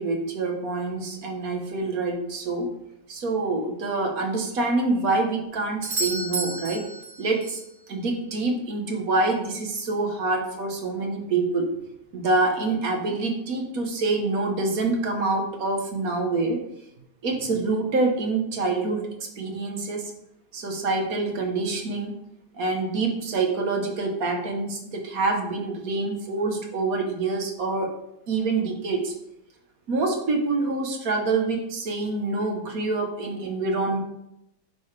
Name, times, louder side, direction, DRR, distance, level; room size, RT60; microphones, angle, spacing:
voice 1, 0.0-2.7 3.1-6.8 7.2-7.6 7.9-11.7 12.1-16.6 17.2-19.1 19.4-20.1 20.5-22.2 22.6-27.9 28.3-29.1 29.9-34.0, right 3 dB, 60° right, 2 dB, 1.6 m, -26 dB
Doorbell, 5.8-7.7 11.7-11.8, right 2 dB, 40° right, 1.0 m, -31 dB
9.6 x 5.2 x 3.3 m, 0.83 s
omnidirectional pair, 1.8 m